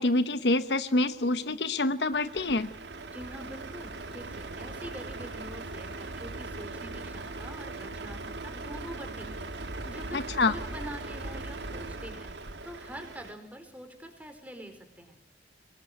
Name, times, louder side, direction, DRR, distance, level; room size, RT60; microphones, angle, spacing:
voice 1, 0.0-2.7 10.1-10.5, left 2 dB, 70° left, 12 dB, 1.0 m, -26 dB
Truck, 2.1-13.3, right 2 dB, 80° right, 2.2 m, -39 dB
voice 2, 3.1-9.4 9.7-15.2, equal, 10° right, 6 dB, 4.6 m, -45 dB
24.5 x 20.0 x 9.3 m, 0.75 s
head